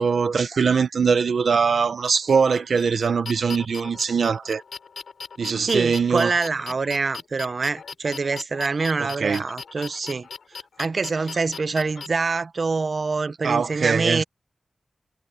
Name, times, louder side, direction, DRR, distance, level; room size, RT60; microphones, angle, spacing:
voice 1, 0.0-4.6 5.4-6.3 9.0-9.4 13.4-14.2, right 5 dB, 80° right, 1.0 m, -22 dB
sound 1, 2.0-12.1, left 5 dB, 85° left, 6.2 m, -39 dB
voice 2, 5.7-10.3 10.8-14.2, right 4 dB, 55° right, 0.8 m, -25 dB
wide cardioid pair, 80°, 0 cm